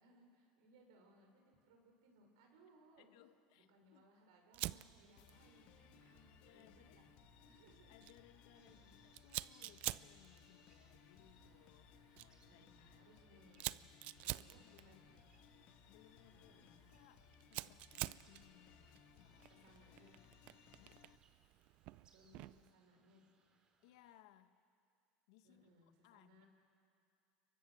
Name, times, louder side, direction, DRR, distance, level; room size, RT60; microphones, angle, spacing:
voice 1, 0.0-3.1 3.5-7.1 7.5-7.9 8.6-9.0 12.5-13.9 14.2-15.3 16.3-16.8 19.5-20.2 22.1-23.2 25.4-26.5, right 1 dB, 85° right, 2 dB, 5.9 m, -67 dB
voice 2, 3.0-4.1 6.0-7.0 7.9-13.4 14.7-15.0 15.9-19.7 20.8-21.0 23.8-24.6 25.3-25.7 26.0-26.4, left 13 dB, 80° left, 11 dB, 1.2 m, -67 dB
Fire, 4.5-22.7, right 18 dB, 55° right, 0.5 m, -50 dB
sound 1, 5.2-21.2, left 11 dB, 60° left, 1.4 m, -65 dB
sound 2, 8.5-24.2, right 4 dB, 30° right, 2.8 m, -77 dB
29.0 x 23.0 x 6.4 m, 2.5 s
supercardioid pair, 125°, 3 cm